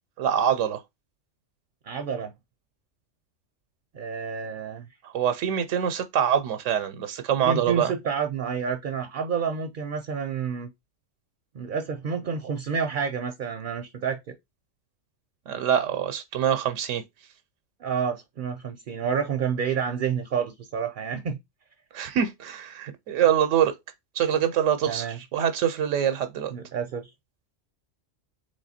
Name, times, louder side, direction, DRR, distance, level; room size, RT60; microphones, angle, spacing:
voice 1, 0.2-0.8 5.0-7.9 15.5-17.0 21.9-23.7 24.1-26.5, right 9 dB, 85° right, 0.9 m, -24 dB
voice 2, 1.9-2.3 3.9-4.9 7.5-10.7 11.5-14.2 17.8-21.4 24.9-25.2 26.5-27.1, right 6 dB, 55° right, 0.6 m, -29 dB
3.5 x 3.2 x 4.1 m
omnidirectional pair, 1.3 m